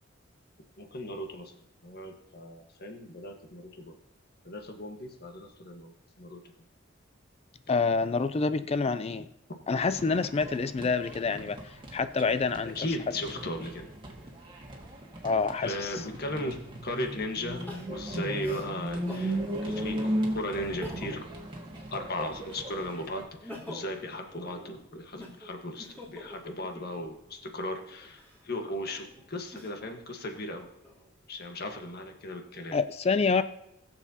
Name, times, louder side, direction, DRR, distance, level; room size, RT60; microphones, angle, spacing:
voice 1, 0.8-1.6 1.8-3.9 4.4-6.4 9.5-9.6 12.7-13.9 15.6-16.6 16.8-21.3 21.9-30.7 31.3-32.8, left 1 dB, 55° left, 4 dB, 1.4 m, -37 dB
voice 2, 7.7-9.3 9.7-11.6 11.9-12.7 15.2-15.7 32.7-33.4, left 4 dB, 30° left, 12 dB, 0.4 m, -27 dB
sound 1, 9.8-23.2, right 1 dB, 25° right, 1.6 m, -37 dB
Crying sobbing, 17.6-19.3 19.9-20.0 20.6-21.3 21.7-22.7 23.2-27.2 27.9-30.0 30.5-31.4, left 1 dB, 10° left, 3.0 m, -47 dB
20.5 x 7.2 x 2.8 m, 0.82 s
head